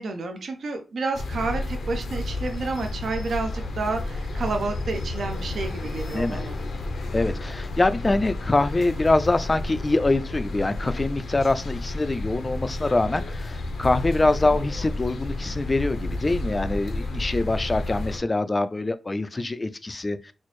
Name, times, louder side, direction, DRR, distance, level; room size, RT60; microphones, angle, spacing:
voice 1, 0.0-6.6 14.4-14.5, right 3 dB, 65° right, 0.6 m, -30 dB
sound 1, 1.1-18.2, left 2 dB, 75° left, 0.6 m, -31 dB
voice 2, 7.1-20.3, left 2 dB, 25° left, 0.3 m, -24 dB
4.2 x 2.0 x 3.1 m
cardioid pair, 90°, 0 cm